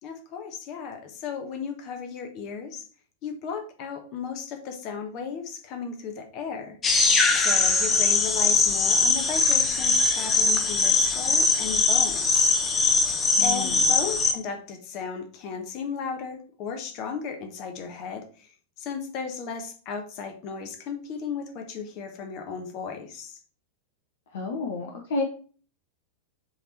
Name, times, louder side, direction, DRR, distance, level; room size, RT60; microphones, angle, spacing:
voice 1, 0.0-2.8 3.2-6.8 7.3-12.6 13.4-18.5 18.8-23.4, left 6 dB, 40° left, 5 dB, 1.3 m, -35 dB
sound 1, 6.8-14.3, left 4 dB, 25° left, 1.1 m, -21 dB
voice 2, 13.4-13.9 24.3-25.2, left 3 dB, 60° left, 3 dB, 1.0 m, -30 dB
7.1 x 3.6 x 4.4 m, 0.41 s
figure-of-eight pair, 90°, 0 cm